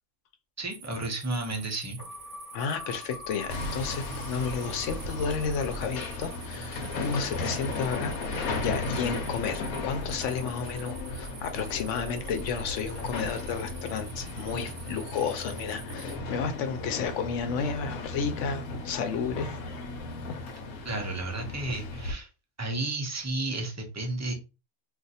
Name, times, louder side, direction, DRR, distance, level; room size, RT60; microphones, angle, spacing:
voice 1, 0.6-2.0 20.8-22.3 22.6-24.3, right 2 dB, 25° right, 0.4 m, -32 dB
sound 1, 0.7-16.2, right 7 dB, 80° right, 1.1 m, -48 dB
sound 2, 2.0-8.3, left 2 dB, 25° left, 0.6 m, -46 dB
voice 2, 2.5-19.6 20.3-20.4, left 6 dB, 65° left, 0.9 m, -32 dB
Hammer, 3.5-22.1, left 2 dB, 90° left, 1.1 m, -36 dB
2.5 x 2.5 x 4.0 m
omnidirectional pair, 1.5 m